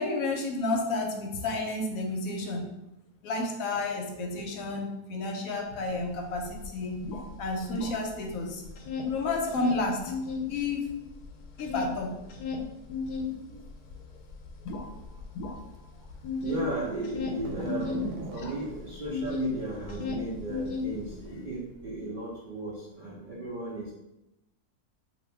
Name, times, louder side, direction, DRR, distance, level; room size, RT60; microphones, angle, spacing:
voice 1, 0.0-2.7 3.2-7.1 7.4-8.6 9.0-10.1 10.5-10.9 11.6-12.2 18.4-18.5, left 2 dB, 70° left, 2 dB, 0.9 m, -31 dB
sound 1, 6.0-6.1 6.3-8.3 8.6-10.5 10.9-19.5 19.8-21.3, left 5 dB, 85° left, 1.1 m, -35 dB
voice 2, 16.4-23.9, right 2 dB, 65° right, -7 dB, 0.4 m, -35 dB
sound 2, 17.3-22.0, right 3 dB, 85° right, 1.2 m, -43 dB
2.8 x 2.6 x 3.3 m, 0.92 s
omnidirectional pair, 1.7 m